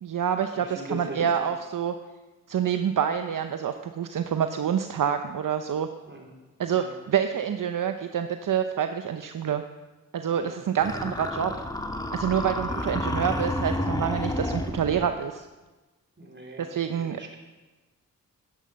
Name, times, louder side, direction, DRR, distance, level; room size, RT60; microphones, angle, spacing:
voice 1, 0.0-1.9 2.5-5.9 6.6-9.6 10.1-11.5 12.1-15.5 16.6-17.2, right 8 dB, 60° right, 8 dB, 0.8 m, -27 dB
voice 2, 0.5-1.2 6.1-6.4 6.7-6.9 10.3-10.6 12.7-12.9 16.2-16.7 16.9-17.4, right 2 dB, 30° right, 1 dB, 3.9 m, -40 dB
sound 1, 10.8-15.1, left 1 dB, 10° left, 1.7 m, -30 dB
12.5 x 10.0 x 6.5 m, 1.2 s
cardioid pair, 50°, 36 cm